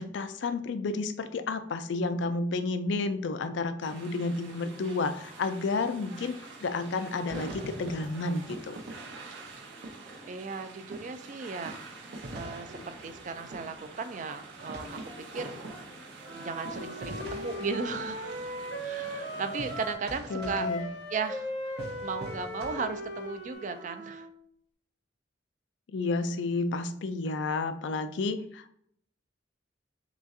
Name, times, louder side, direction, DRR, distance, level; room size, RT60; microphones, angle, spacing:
voice 1, 0.0-8.8 20.3-20.8 25.9-28.7, left 3 dB, 70° left, 9 dB, 0.4 m, -31 dB
sound 1, 3.8-19.9, right 3 dB, 90° right, 1.0 m, -47 dB
sound 2, 7.3-10.6 10.9-23.5, right 1 dB, 60° right, 0.7 m, -46 dB
voice 2, 10.2-12.0 12.3-15.5 16.3-18.5 18.8-20.7 21.1-21.5 22.0-24.3, right 4 dB, 40° right, 9 dB, 0.4 m, -36 dB
Wind instrument woodwind instrument, 16.2-20.0 20.3-24.3, equal, 85° left, 1.3 m, -38 dB
6.0 x 2.4 x 2.6 m, 0.67 s
head